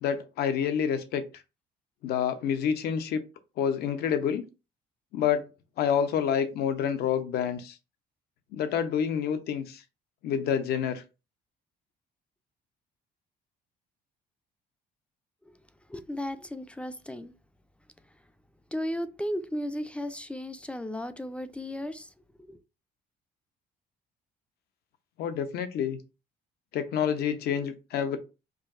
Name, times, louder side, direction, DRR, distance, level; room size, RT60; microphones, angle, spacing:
voice 1, 0.0-1.2 2.0-3.2 3.6-4.4 5.1-5.4 5.8-7.8 8.5-9.8 10.2-11.0 25.2-26.0 26.7-28.2, left 8 dB, 70° left, 0.7 m, -28 dB
voice 2, 15.9-17.3 18.7-22.1 22.5-22.6, left 1 dB, 5° left, 0.4 m, -35 dB
5.0 x 2.7 x 2.5 m
cardioid pair, 110°, 17 cm